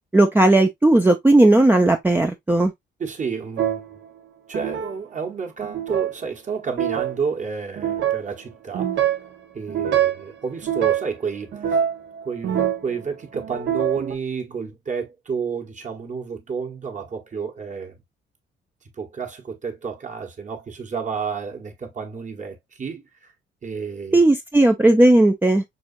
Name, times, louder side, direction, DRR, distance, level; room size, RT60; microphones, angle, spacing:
voice 1, 0.1-2.7 24.1-25.6, right 2 dB, 10° right, 0.6 m, -16 dB
voice 2, 3.0-4.0 4.5-9.2 9.5-11.9 12.2-18.0 19.0-23.3 23.6-24.2, right 5 dB, 40° right, 1.4 m, -30 dB
sound 1, 3.6-3.9 4.5-4.9 5.6-6.1 6.7-7.1 7.8-8.3 8.7-9.3 9.7-10.3 10.6-11.1 11.5-12.9 13.3-14.1, right 10 dB, 65° right, 1.2 m, -24 dB
6.1 x 2.4 x 2.6 m
cardioid pair, 90°, 20 cm